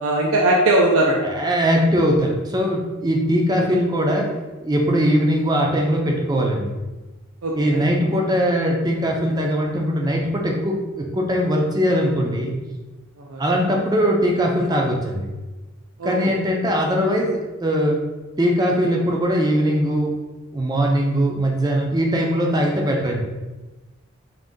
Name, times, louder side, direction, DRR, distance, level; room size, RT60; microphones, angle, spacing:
voice 1, 0.0-1.2 7.4-7.8 13.2-13.4 16.0-16.1, right 1 dB, 90° right, -2 dB, 0.5 m, -19 dB
voice 2, 1.2-4.3 4.6-6.8 7.5-12.5 13.4-15.3 16.0-18.0 18.4-20.1 20.5-23.2, equal, 20° right, 0 dB, 0.5 m, -20 dB
3.9 x 2.6 x 3.7 m, 1.2 s
head